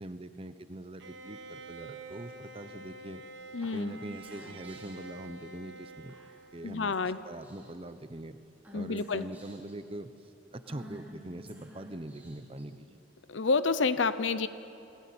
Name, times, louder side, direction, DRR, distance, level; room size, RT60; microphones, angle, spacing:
voice 1, 0.0-3.2 3.7-6.2 6.5-8.4 8.7-13.0, right 1 dB, 30° right, 11 dB, 0.8 m, -43 dB
Bowed string instrument, 1.0-7.1, right 3 dB, 75° right, 1.5 m, -48 dB
voice 2, 3.5-3.9 6.6-7.2 8.7-9.2 13.3-14.5, left 4 dB, 85° left, 13 dB, 0.7 m, -29 dB
Female speech woman speaking / Whispering, 3.6-5.1 6.1-6.5 6.9-7.1 7.4-7.9 8.6-9.7 10.6-12.6, right 1 dB, 10° right, 4.9 m, -50 dB
28.5 x 19.0 x 8.7 m, 2.9 s
head